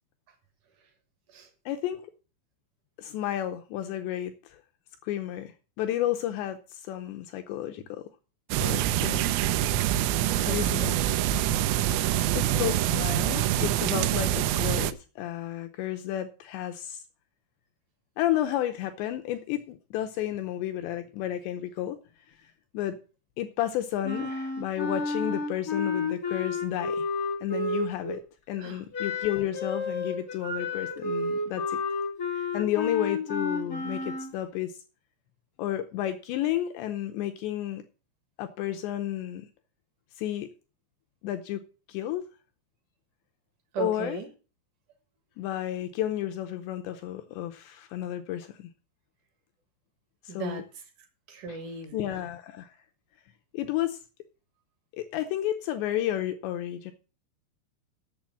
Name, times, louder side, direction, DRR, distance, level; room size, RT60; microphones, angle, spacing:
voice 1, 1.7-2.0 3.0-4.6 5.0-8.0 8.6-9.2 10.4-10.9 12.3-17.0 18.2-22.0 22.7-23.0 23.4-27.1 27.4-28.2 28.5-31.8 32.3-34.8 35.6-37.8 38.4-39.5 40.2-40.5 41.2-41.6 41.9-42.2 43.8-44.2 45.4-48.7 50.2-50.6 51.5-51.6 51.9-52.8 53.5-54.0 54.9-56.9, left 12 dB, 85° left, 7 dB, 2.5 m, -32 dB
sound 1, 8.5-14.9, right 12 dB, 90° right, 3.4 m, -25 dB
voice 2, 10.0-12.7 28.6-28.8 43.7-44.3 50.3-50.6 51.3-52.1, right 4 dB, 70° right, 7 dB, 1.9 m, -38 dB
Wind instrument woodwind instrument, 24.0-28.2 28.9-34.3, left 3 dB, 60° left, 0.8 m, -31 dB
8.7 x 6.9 x 7.3 m, 0.35 s
omnidirectional pair, 5.9 m